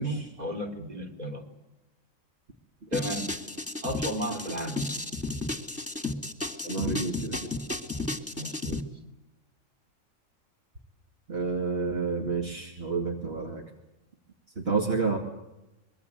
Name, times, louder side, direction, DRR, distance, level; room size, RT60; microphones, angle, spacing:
voice 1, 0.0-1.4 2.9-3.3 3.8-4.8 8.4-8.8, equal, 30° right, 4 dB, 3.6 m, -33 dB
sound 1, 2.9-8.8, left 2 dB, 10° left, 2.1 m, -33 dB
voice 2, 6.6-7.5 11.3-13.6 14.6-15.2, right 4 dB, 50° right, 2 dB, 2.7 m, -29 dB
25.0 x 22.5 x 8.3 m, 0.97 s
omnidirectional pair, 1.4 m